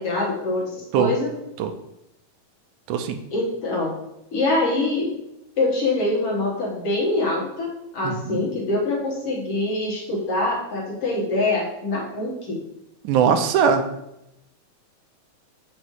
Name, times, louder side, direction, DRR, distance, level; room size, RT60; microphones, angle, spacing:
voice 1, 0.0-1.4 3.3-3.9 4.3-5.1 5.6-12.6, left 2 dB, 60° left, -3 dB, 2.1 m, -24 dB
voice 2, 8.0-8.4 13.0-13.9, right 7 dB, 90° right, 7 dB, 2.0 m, -20 dB
7.4 x 5.6 x 3.1 m, 0.86 s
omnidirectional pair, 3.4 m